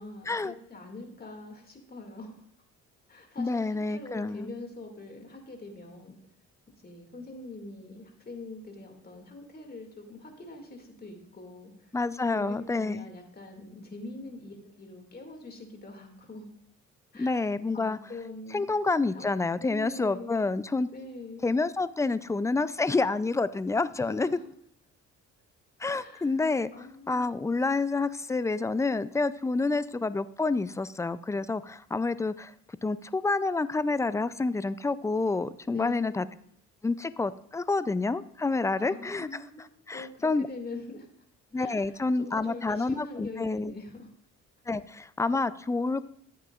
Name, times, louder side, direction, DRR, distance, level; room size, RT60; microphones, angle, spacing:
voice 1, 0.0-2.3 3.1-6.2 6.8-11.9 12.3-16.5 17.1-17.4 17.7-18.7 19.1-19.3 19.6-20.4 20.9-21.5 24.0-24.5 26.0-26.3 26.7-27.3 35.7-36.3 38.8-41.1 41.5-44.1, left 2 dB, 30° left, 3 dB, 2.2 m, -43 dB
voice 2, 3.4-4.5 11.9-13.0 17.2-18.0 18.5-20.9 21.4-24.3 25.8-26.7 27.1-32.5 32.8-36.2 36.8-39.3 39.9-40.5 41.5-43.7 44.7-46.0, left 3 dB, 10° left, 15 dB, 0.3 m, -28 dB
13.5 x 8.5 x 2.4 m, 0.67 s
cardioid pair, 90°, 30 cm